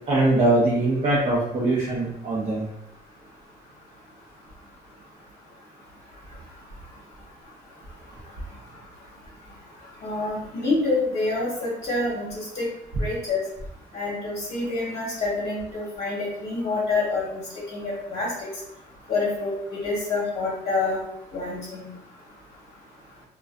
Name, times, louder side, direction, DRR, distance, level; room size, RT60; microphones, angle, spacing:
voice 1, 0.1-2.7, right 2 dB, 40° right, -6 dB, 0.6 m, -22 dB
voice 2, 10.0-12.7 13.0-13.4 13.9-17.4 17.7-18.5 19.1-21.0 21.3-21.9, left 3 dB, 45° left, -6 dB, 0.9 m, -27 dB
2.5 x 2.2 x 2.3 m, 0.79 s
cardioid pair, 110°, 17 cm